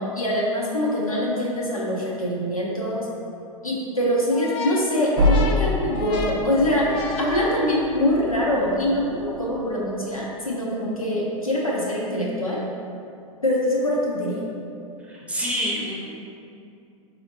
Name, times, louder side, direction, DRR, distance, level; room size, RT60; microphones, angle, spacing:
voice 1, 0.0-3.1 3.6-12.6 13.4-14.4, left 1 dB, 90° left, -4 dB, 0.7 m, -24 dB
sound 1, 4.3-8.2, left 4 dB, 30° left, 0.4 m, -34 dB
sound 2, 5.2-9.8, left 1 dB, 60° right, 0.6 m, -27 dB
voice 2, 15.1-16.0, equal, 5° right, -4 dB, 0.7 m, -27 dB
4.8 x 2.9 x 2.7 m, 2.6 s
figure-of-eight pair, 90°, 18 cm